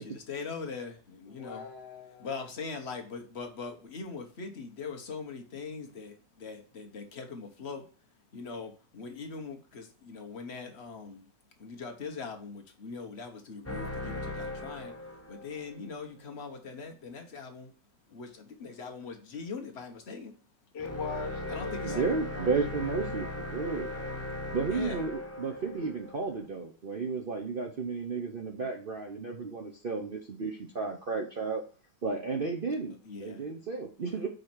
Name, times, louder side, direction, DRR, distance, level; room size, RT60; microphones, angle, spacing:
voice 1, 0.0-1.7 2.2-7.9 8.3-11.3 11.6-14.9 15.3-17.7 18.1-20.3 21.5-22.0 24.7-25.0 33.0-33.4, left 4 dB, 40° left, 1.2 m, -41 dB
voice 2, 1.3-2.3 20.7-22.5 23.9-24.1, left 5 dB, 75° left, 1.7 m, -41 dB
sound 1, 13.7-15.7 20.8-26.4, left 2 dB, 10° left, 0.9 m, -38 dB
voice 3, 21.8-23.9 24.5-31.6 32.0-34.3, right 4 dB, 50° right, 0.7 m, -33 dB
5.3 x 4.2 x 6.0 m
omnidirectional pair, 1.9 m